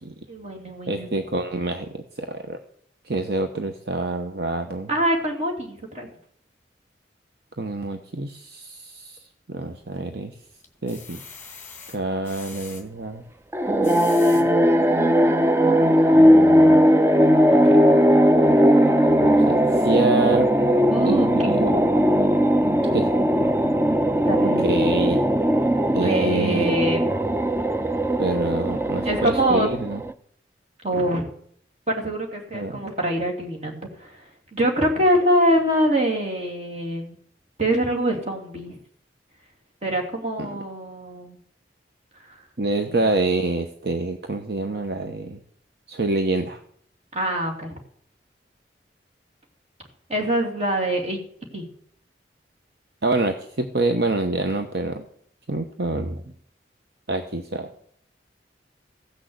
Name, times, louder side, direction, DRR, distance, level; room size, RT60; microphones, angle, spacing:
voice 1, 0.3-1.2 4.9-6.1 20.9-21.9 24.2-24.7 26.0-27.1 29.0-29.7 30.8-31.3 31.9-34.2 34.5-37.1 37.6-38.8 39.8-41.4 42.3-42.4 42.9-43.1 47.1-47.7 50.1-51.2 51.5-51.7, right 1 dB, 35° right, 1 dB, 2.8 m, -24 dB
voice 2, 0.9-2.6 3.1-4.9 7.6-9.2 9.5-10.3 10.8-11.2 11.9-13.2 14.3-14.5 16.1-16.8 17.6-17.8 19.2-20.5 21.0-21.6 22.9-23.1 24.6-25.2 25.9-26.8 28.2-30.0 32.5-32.8 40.4-40.5 42.6-45.4 45.9-46.6 53.0-55.0 55.5-56.2 57.1-57.7, right 2 dB, 60° right, 5 dB, 0.9 m, -26 dB
sound 1, 9.6-10.2 10.6-12.8 13.6-14.4 15.1-15.2 15.5-15.6, left 5 dB, 10° left, 2.2 m, -42 dB
sound 2, 13.5-30.1, equal, 15° right, 0.4 m, -18 dB
15.5 x 6.4 x 8.0 m, 0.63 s
head